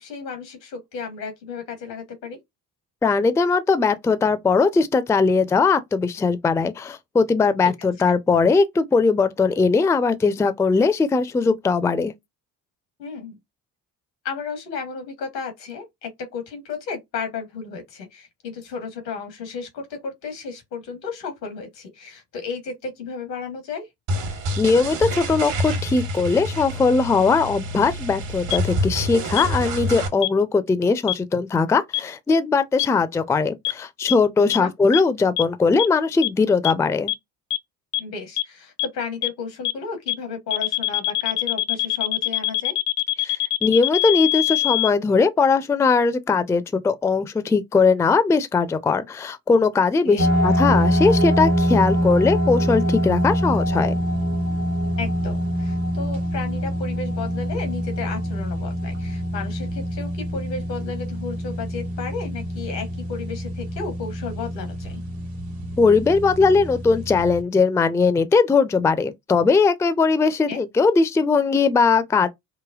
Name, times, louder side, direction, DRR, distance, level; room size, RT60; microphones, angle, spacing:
voice 1, 0.0-2.4 13.0-13.4 14.2-23.9 34.6-34.7 38.0-42.8 50.0-50.2 55.0-65.0 70.5-70.6, left 5 dB, 85° left, 1.3 m, -33 dB
voice 2, 3.0-12.1 24.6-37.1 43.2-54.0 65.8-72.3, left 4 dB, 5° left, 0.4 m, -20 dB
sound 1, 24.1-30.1, equal, 65° right, 1.2 m, -27 dB
sound 2, 28.5-28.6 29.4-29.5 30.2-30.3 31.1-31.2 31.9-32.0 32.8-32.9 33.6-33.7 34.1-34.2 34.5-34.6 34.9-35.0 35.4-35.5 35.8-35.9 36.2-36.3 36.6-36.7 37.1-37.2 37.5-37.6 37.9-38.0 38.4-38.5 38.8-38.9 39.2-39.3 39.6-39.7 40.1-40.2 40.5-44.9, left 17 dB, 65° left, 0.6 m, -22 dB
sound 3, 50.2-67.4, equal, 85° right, 1.2 m, -25 dB
5.0 x 2.2 x 2.3 m
figure-of-eight pair, 50°, 49 cm